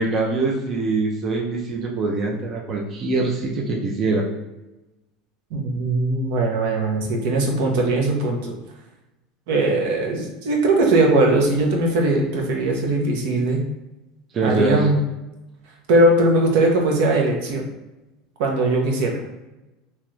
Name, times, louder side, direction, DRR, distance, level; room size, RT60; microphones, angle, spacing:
voice 1, 0.0-4.3 14.3-14.9, right 3 dB, 30° right, -1 dB, 0.5 m, -23 dB
voice 2, 5.5-8.5 9.5-13.6 14.4-15.0 15.9-17.6 18.4-19.2, right 2 dB, 70° right, 1 dB, 0.7 m, -20 dB
2.9 x 2.4 x 3.1 m, 1.0 s
supercardioid pair, 135°, 0 cm